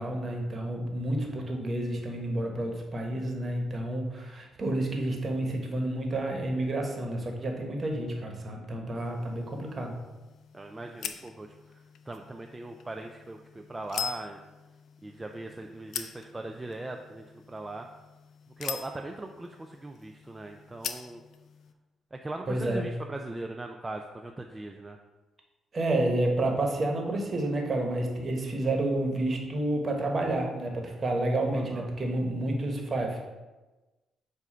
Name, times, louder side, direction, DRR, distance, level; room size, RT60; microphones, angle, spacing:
voice 1, 0.0-10.0 22.5-22.8 25.7-33.2, right 1 dB, 40° right, 2 dB, 1.2 m, -30 dB
sound 1, 9.0-21.7, left 7 dB, 70° left, 0.4 m, -43 dB
voice 2, 10.5-14.4 15.0-17.9 18.6-21.2 22.1-25.0 31.5-31.9, right 2 dB, 20° right, 3 dB, 0.4 m, -40 dB
7.4 x 2.6 x 5.5 m, 1.2 s
cardioid pair, 90°, 0 cm